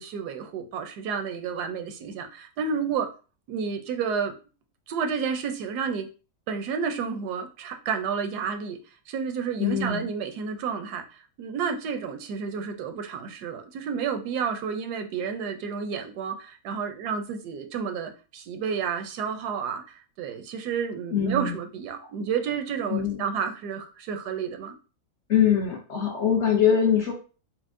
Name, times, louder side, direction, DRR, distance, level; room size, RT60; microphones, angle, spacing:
voice 1, 0.0-3.1 3.5-4.4 4.9-6.1 6.5-8.8 9.1-24.8, right 6 dB, 85° right, 5 dB, 1.2 m, -31 dB
voice 2, 9.6-10.1 21.1-21.6 22.0-22.1 22.9-23.2 25.3-27.1, left 8 dB, 60° left, 1 dB, 0.7 m, -23 dB
4.3 x 2.1 x 2.5 m, 0.35 s
omnidirectional pair, 1.7 m